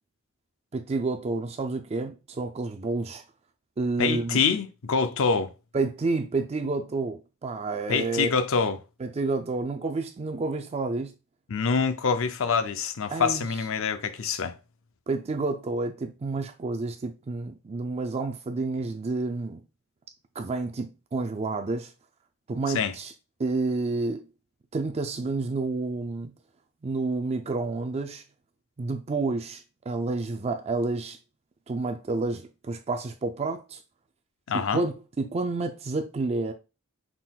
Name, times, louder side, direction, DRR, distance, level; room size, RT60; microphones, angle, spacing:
voice 1, 0.7-3.2 3.8-4.4 5.7-8.3 9.0-11.1 13.1-13.4 15.1-19.6 20.4-21.9 22.5-23.1 23.4-24.2 24.7-26.3 26.8-28.2 28.8-31.2 31.7-33.8 34.5-36.5, right 3 dB, 30° right, 0.4 m, -29 dB
voice 2, 4.0-5.5 7.9-8.8 11.5-14.5 22.7-22.9 34.5-34.8, left 5 dB, 65° left, 0.5 m, -25 dB
5.9 x 3.7 x 2.3 m
head